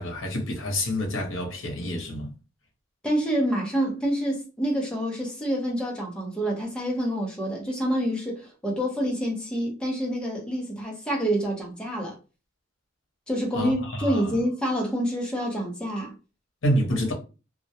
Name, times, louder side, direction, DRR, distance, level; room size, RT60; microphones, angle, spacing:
voice 1, 0.0-2.3 13.5-14.4 16.6-17.1, equal, 75° left, 0.8 m, -28 dB
voice 2, 3.0-12.2 13.3-16.1, equal, 5° left, 0.6 m, -27 dB
2.3 x 2.1 x 2.7 m
head